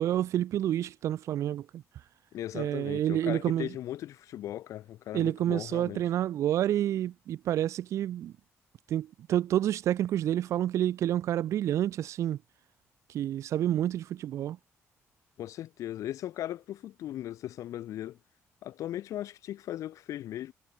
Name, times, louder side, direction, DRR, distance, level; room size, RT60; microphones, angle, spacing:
voice 1, 0.0-1.8 2.5-3.7 5.1-8.3 8.9-12.4 13.1-14.6, right 11 dB, 70° right, 1.0 m, -29 dB
voice 2, 2.3-6.0 15.4-18.2 18.6-20.5, left 12 dB, 80° left, 3.4 m, -38 dB
cardioid pair, 160°, 5 cm